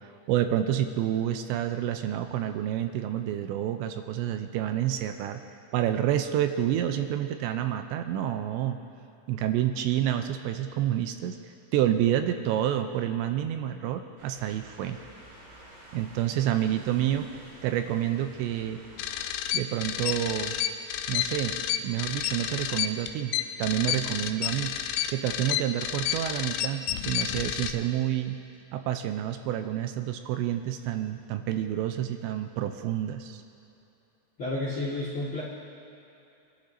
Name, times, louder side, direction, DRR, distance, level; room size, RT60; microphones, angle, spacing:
voice 1, 0.0-5.4 5.7-8.8 9.3-11.4 11.7-15.0 15.9-17.3 17.6-18.8 19.5-20.6 21.1-23.3 23.6-24.7 25.1-28.4 28.7-33.4, right 11 dB, 85° right, 7 dB, 2.8 m, -28 dB
sound 1, 14.2-19.3, right 1 dB, 60° right, 5.7 m, -51 dB
sound 2, 19.0-27.7, left 11 dB, 90° left, 3.0 m, -30 dB
voice 2, 34.4-35.4, left 2 dB, 55° left, -8 dB, 1.4 m, -31 dB
24.0 x 11.5 x 2.7 m, 2.8 s
omnidirectional pair, 5.2 m